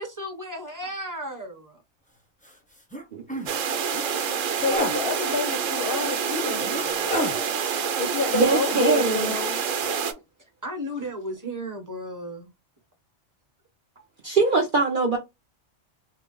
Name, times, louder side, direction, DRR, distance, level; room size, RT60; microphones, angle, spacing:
voice 1, 0.0-1.8 5.7-7.1 10.6-12.5, equal, 15° right, 1.0 m, -35 dB
sound 1, 2.4-2.5 2.9-3.0 3.3-3.5 3.9-4.1 4.6-5.0 5.9-6.0 6.6-7.4 8.7-9.2 9.5-9.7, left 1 dB, 10° left, 0.4 m, -30 dB
sound 2, 3.5-10.1, right 7 dB, 85° right, 1.1 m, -27 dB
voice 2, 4.6-6.7 8.0-9.6, left 5 dB, 60° left, 0.7 m, -29 dB
voice 3, 8.3-9.4 14.2-15.2, right 3 dB, 50° right, 0.8 m, -22 dB
3.7 x 2.0 x 3.8 m
omnidirectional pair, 1.3 m